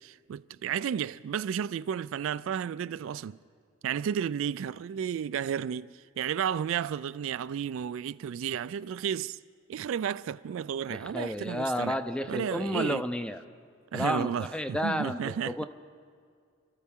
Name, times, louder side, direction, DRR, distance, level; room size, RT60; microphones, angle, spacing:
voice 1, 0.0-3.4 3.8-9.4 9.7-12.0 12.3-13.0 13.9-15.6, right 8 dB, 70° right, 0.3 m, -32 dB
voice 2, 10.9-13.4 13.9-15.7, equal, 5° left, 0.5 m, -31 dB
28.0 x 13.5 x 3.7 m
head